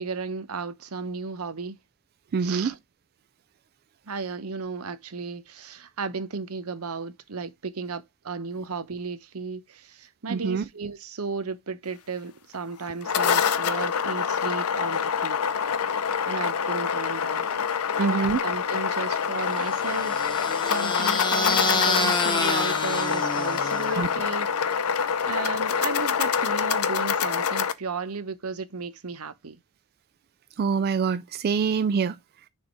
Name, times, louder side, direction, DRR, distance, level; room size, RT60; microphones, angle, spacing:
voice 1, 0.0-1.8 2.4-2.8 4.1-15.4 16.3-17.6 18.0-24.5 25.3-29.6, right 4 dB, 85° right, 0.9 m, -34 dB
voice 2, 2.3-2.7 10.3-10.6 18.0-18.4 23.9-24.1 30.6-32.2, right 5 dB, 45° right, 0.3 m, -25 dB
sound 1, 12.8-27.7, left 7 dB, 85° left, 0.6 m, -26 dB
sound 2, 19.5-24.1, left 3 dB, 20° left, 1.0 m, -28 dB
6.5 x 3.5 x 4.4 m
head